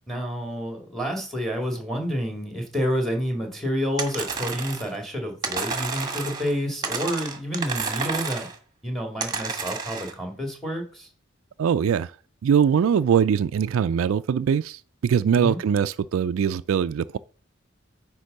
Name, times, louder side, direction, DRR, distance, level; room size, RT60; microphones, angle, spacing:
voice 1, 0.1-8.5 8.8-11.1 15.3-15.6, equal, ahead, 2.1 m, -29 dB
sound 1, 4.0-4.9 5.4-6.5 6.8-8.6 9.2-10.1, right 5 dB, 20° right, 1.4 m, -30 dB
voice 2, 11.6-12.1 12.4-17.2, right 7 dB, 90° right, 0.3 m, -22 dB
9.7 x 3.6 x 6.6 m
head